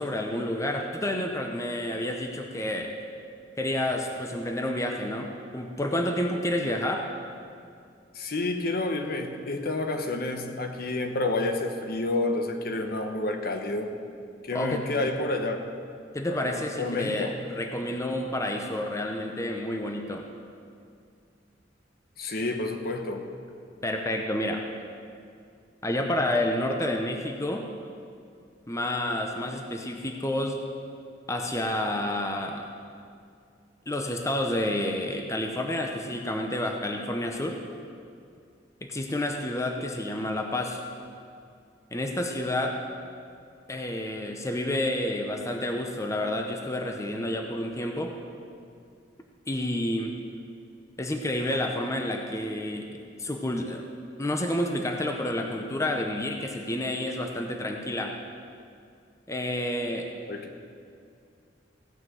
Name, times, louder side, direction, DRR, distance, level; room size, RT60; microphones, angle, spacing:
voice 1, 0.0-2.9 3.6-5.3 5.5-7.1 14.5-14.8 16.1-20.3 23.8-24.6 25.8-27.6 28.7-30.6 31.3-32.6 33.9-37.6 38.8-40.8 41.9-42.8 43.7-48.1 49.5-50.2 51.0-53.8 54.2-58.2 59.3-60.1, left 1 dB, 15° left, 3 dB, 0.8 m, -29 dB
voice 2, 8.1-13.9 14.4-15.6 16.3-17.3 22.2-23.3 60.3-60.5, left 2 dB, 55° left, 5 dB, 1.0 m, -29 dB
16.5 x 5.9 x 7.9 m, 2.4 s
head